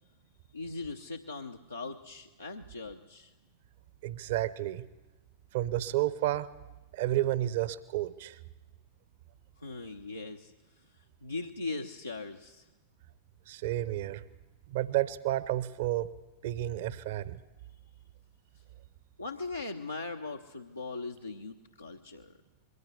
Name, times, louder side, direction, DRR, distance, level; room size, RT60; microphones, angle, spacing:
voice 1, 0.5-3.3 9.6-10.5 11.0-12.7 19.2-22.3, left 3 dB, 85° left, 2 dB, 0.8 m, -40 dB
voice 2, 4.0-4.8 5.5-6.5 6.9-8.4 13.5-14.2 14.7-16.1 16.4-17.4, right 14 dB, 55° right, 17 dB, 0.8 m, -31 dB
21.5 x 16.5 x 8.2 m, 1.1 s
figure-of-eight pair, 90°, 0 cm